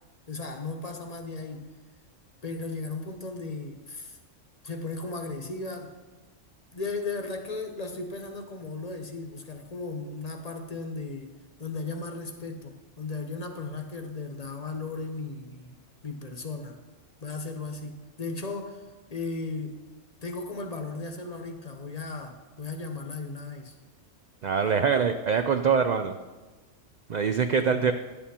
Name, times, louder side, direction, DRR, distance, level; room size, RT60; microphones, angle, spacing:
voice 1, 0.3-1.7 2.4-4.2 4.6-5.9 6.7-11.3 11.6-15.8 16.0-16.8 17.2-19.8 20.2-23.7 27.6-27.9, left 3 dB, 35° left, 5 dB, 0.8 m, -36 dB
voice 2, 24.4-26.1 27.1-27.9, right 6 dB, 75° right, 8 dB, 0.4 m, -24 dB
10.5 x 8.2 x 4.3 m, 1.2 s
omnidirectional pair, 1.3 m